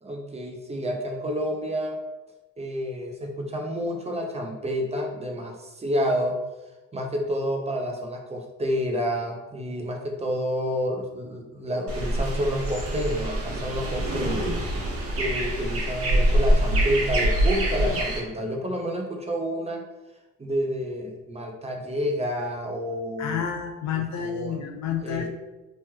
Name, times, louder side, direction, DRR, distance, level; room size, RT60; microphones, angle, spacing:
voice 1, 0.0-2.0 2.6-6.4 6.9-14.5 15.1-19.8 20.4-23.4 23.9-24.7 25.0-25.3, equal, 20° right, 1 dB, 0.5 m, -29 dB
sound 1, 11.9-18.2, right 1 dB, 50° right, 0.9 m, -25 dB
voice 2, 23.2-25.3, left 7 dB, 65° left, 3 dB, 0.5 m, -29 dB
3.1 x 3.0 x 2.2 m, 1.0 s
cardioid pair, 90°, 30 cm